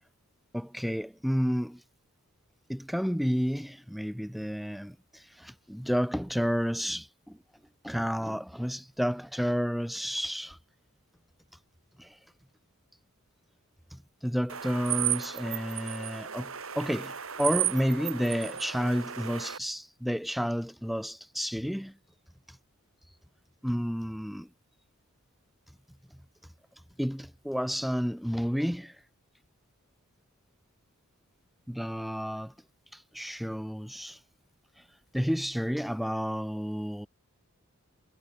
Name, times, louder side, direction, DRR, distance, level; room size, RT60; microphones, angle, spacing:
voice 1, 0.5-1.8 2.7-7.4 7.8-10.6 12.0-12.2 13.9-22.0 22.5-22.6 23.6-24.5 27.0-29.0 31.7-32.5 32.9-34.2 34.8-34.9 35.1-37.1, equal, ahead, 4.2 m, -31 dB
sound 1, 14.5-19.6, right 12 dB, 70° right, 3.3 m, -34 dB
head